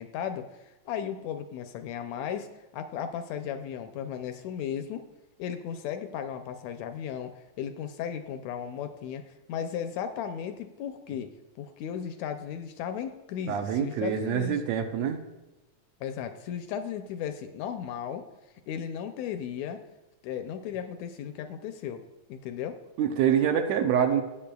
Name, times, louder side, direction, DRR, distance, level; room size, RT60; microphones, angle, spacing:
voice 1, 0.0-5.1 5.4-14.6 16.0-18.3 18.7-19.8 20.2-22.8, left 8 dB, 80° left, 8 dB, 1.7 m, -35 dB
voice 2, 13.5-15.2 23.0-24.2, right 8 dB, 75° right, 5 dB, 1.9 m, -25 dB
17.0 x 7.1 x 2.3 m, 1.0 s
omnidirectional pair, 3.4 m